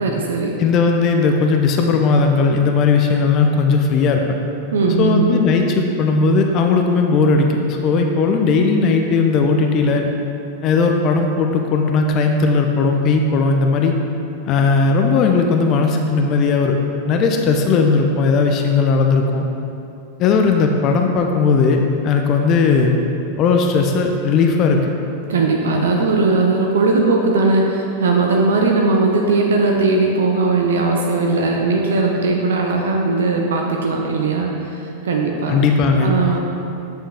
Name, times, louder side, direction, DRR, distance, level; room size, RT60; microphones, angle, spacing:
voice 1, 0.0-0.6 4.7-5.3 25.3-35.6 36.0-36.4, right 3 dB, 65° right, 1 dB, 0.7 m, -18 dB
voice 2, 0.6-4.2 5.0-10.1 10.6-13.9 14.5-16.8 17.1-19.5 20.2-23.0 23.4-24.9 35.5-36.1, left 4 dB, 35° left, 3 dB, 0.6 m, -17 dB
8.8 x 5.4 x 3.5 m, 2.7 s
figure-of-eight pair, 90°, 0 cm